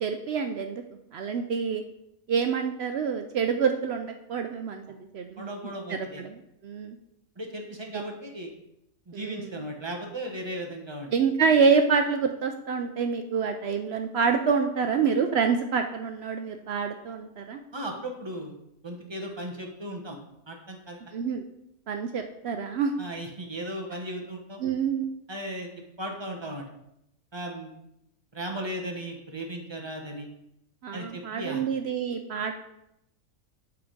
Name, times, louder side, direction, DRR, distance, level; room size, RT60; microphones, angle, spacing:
voice 1, 0.0-0.8 1.1-1.8 2.3-5.5 5.9-7.0 7.9-8.0 9.1-9.5 11.1-17.6 21.1-21.4 21.9-22.9 24.6-25.1 30.8-32.5, right 6 dB, 65° right, 5 dB, 0.6 m, -27 dB
voice 2, 5.4-6.2 7.4-8.5 9.1-11.1 17.7-18.5 18.8-20.2 20.5-21.0 23.0-24.6 25.3-25.7 26.0-26.6 27.3-27.7 28.3-30.3 30.9-31.6, right 1 dB, 20° right, 1 dB, 1.0 m, -36 dB
7.8 x 3.6 x 5.2 m, 0.81 s
omnidirectional pair, 1.5 m